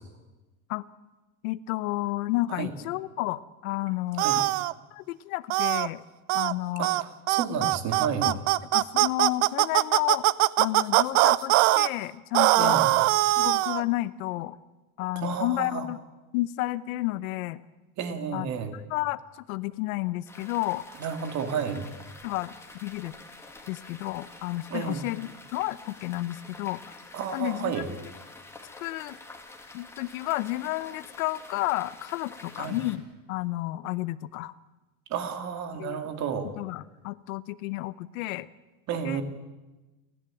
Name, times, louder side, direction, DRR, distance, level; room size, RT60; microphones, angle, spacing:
voice 1, 1.4-4.4 4.9-6.0 6.3-6.9 7.6-7.7 8.2-8.4 8.7-10.3 10.6-12.8 13.4-14.6 15.0-16.0 16.3-17.6 18.3-18.5 18.7-20.8 22.2-22.5 22.8-23.1 23.7-27.0 27.3-28.0 28.8-29.2 29.7-34.5 35.8-36.0 36.6-38.5 39.0-39.2, left 18 dB, 60° left, 17 dB, 0.9 m, -31 dB
sound 1, 4.2-4.7 5.5-5.9 6.3-6.5 6.8-7.0 7.3-11.9 12.3-13.8, right 19 dB, 55° right, 0.7 m, -22 dB
voice 2, 6.8-8.3 12.6-13.0 15.2-15.9 18.0-18.7 21.0-21.8 24.7-25.0 27.1-27.9 32.6-32.8 35.1-36.5 38.9-39.2, right 7 dB, 35° right, 7 dB, 2.6 m, -31 dB
sound 2, 20.3-33.0, left 3 dB, 5° left, 2.2 m, -48 dB
29.5 x 11.0 x 9.1 m, 1.1 s
supercardioid pair, 145°, 46 cm